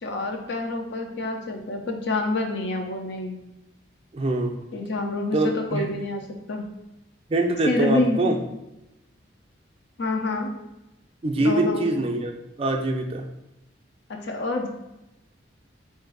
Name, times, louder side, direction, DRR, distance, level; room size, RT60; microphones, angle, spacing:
voice 1, 0.0-3.4 4.7-6.2 6.5-6.7 7.6-8.4 10.0-10.5 11.4-11.9 14.1-14.7, left 2 dB, 60° left, 3 dB, 0.5 m, -27 dB
voice 2, 4.1-4.6 5.3-5.9 7.3-8.4 11.2-13.3, right 2 dB, 30° right, 2 dB, 0.4 m, -24 dB
4.0 x 2.6 x 3.8 m, 0.93 s
head